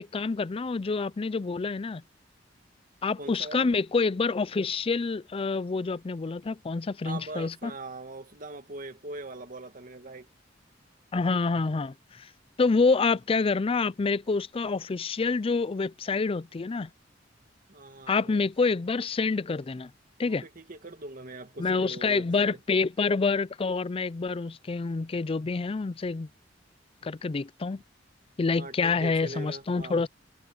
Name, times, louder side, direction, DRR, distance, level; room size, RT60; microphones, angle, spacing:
voice 1, 0.0-2.0 3.0-7.7 11.1-12.3 12.6-16.9 18.1-19.9 20.2-20.4 21.6-26.3 27.0-27.8 28.4-30.1, left 4 dB, 30° left, 0.4 m, -27 dB
voice 2, 3.2-3.7 7.0-10.3 17.7-18.7 20.3-22.6 28.6-30.1, right 2 dB, 45° right, 2.1 m, -41 dB
head